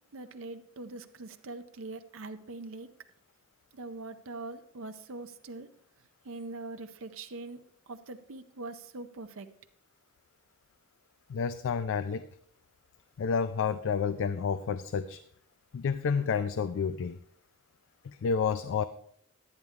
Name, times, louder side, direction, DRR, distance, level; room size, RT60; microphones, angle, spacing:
voice 1, 0.1-2.9 3.7-5.7 6.2-7.6 7.9-9.5, right 3 dB, 65° right, 0.7 m, -42 dB
voice 2, 11.3-12.3 13.2-15.2 15.7-17.2 18.0-18.8, left 6 dB, 65° left, 0.4 m, -30 dB
10.5 x 9.5 x 3.6 m
head